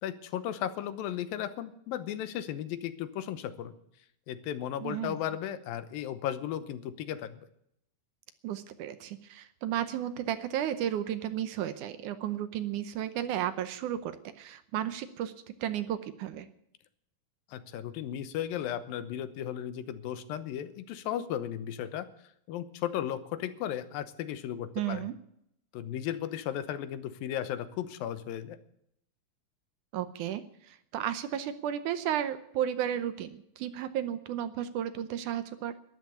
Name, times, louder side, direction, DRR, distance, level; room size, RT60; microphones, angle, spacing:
voice 1, 0.0-3.8 4.3-7.4 17.5-22.1 22.5-25.1 25.7-28.6, left 10 dB, 90° left, 12 dB, 2.7 m, -35 dB
voice 2, 4.8-5.2 8.4-15.3 15.6-16.5 24.8-25.1 29.9-35.7, right 10 dB, 75° right, 11 dB, 2.1 m, -33 dB
12.5 x 11.0 x 8.3 m, 0.74 s
omnidirectional pair, 4.0 m